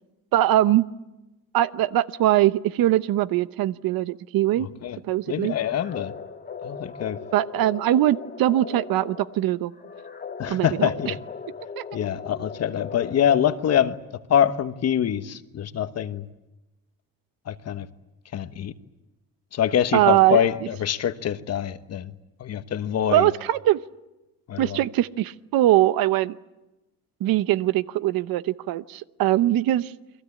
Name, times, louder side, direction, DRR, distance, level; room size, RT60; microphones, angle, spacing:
voice 1, 0.3-0.8 1.5-4.7 5.1-5.5 7.3-9.7 10.5-11.1 11.8-11.9 19.9-20.5 23.1-23.8 24.6-26.4 27.2-29.9, right 14 dB, 70° right, 15 dB, 0.9 m, -21 dB
voice 2, 5.3-6.1 6.6-7.2 10.4-11.2 11.9-13.9 14.3-16.2 17.5-17.9 18.3-18.7 19.5-22.1 22.4-23.3 24.5-24.8, left 9 dB, 45° left, 10 dB, 1.2 m, -24 dB
sound 1, 5.5-13.9, left 5 dB, 25° left, 1.6 m, -39 dB
29.0 x 22.5 x 8.5 m, 1.0 s
cardioid pair, 150°, 36 cm